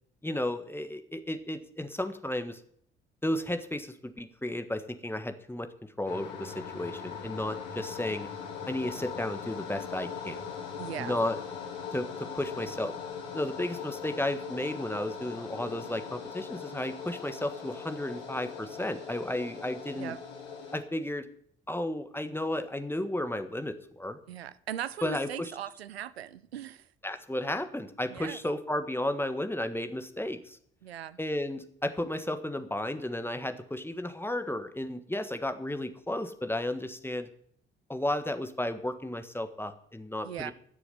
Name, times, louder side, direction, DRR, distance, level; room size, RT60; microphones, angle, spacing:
voice 1, 0.2-2.6 3.2-8.3 8.7-10.4 11.0-11.4 11.9-12.9 13.3-20.1 20.7-21.3 21.7-24.2 25.0-25.5 27.0-30.6 31.2-37.3 37.9-40.5, left 1 dB, 5° left, 1.6 m, -33 dB
sound 1, 6.0-20.8, left 6 dB, 70° left, 3.7 m, -40 dB
voice 2, 10.8-11.2 20.0-20.2 24.3-26.9 28.1-28.4 30.8-31.2 40.2-40.5, right 11 dB, 85° right, 0.5 m, -39 dB
13.5 x 6.9 x 9.2 m
figure-of-eight pair, 45°, 31 cm